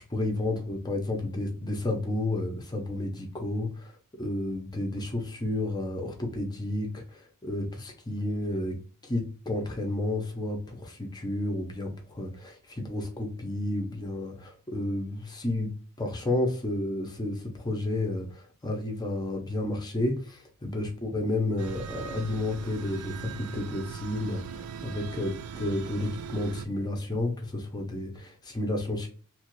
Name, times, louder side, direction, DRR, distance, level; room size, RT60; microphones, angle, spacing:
voice 1, 0.1-3.9 4.2-8.8 9.0-29.1, left 1 dB, 20° left, 2 dB, 0.6 m, -31 dB
sound 1, 21.6-26.7, right 6 dB, 80° right, 0.3 m, -40 dB
2.9 x 2.4 x 3.0 m, 0.38 s
head